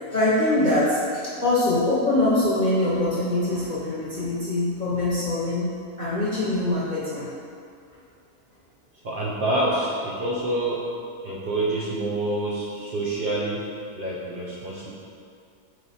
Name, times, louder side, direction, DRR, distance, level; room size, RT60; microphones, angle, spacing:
voice 1, 0.1-5.7 6.0-7.3, left 2 dB, 45° left, -10 dB, 0.6 m, -23 dB
voice 2, 9.0-10.9 11.2-14.9, right 1 dB, 85° right, -7 dB, 0.4 m, -27 dB
4.9 x 2.1 x 4.1 m, 2.5 s
omnidirectional pair, 1.6 m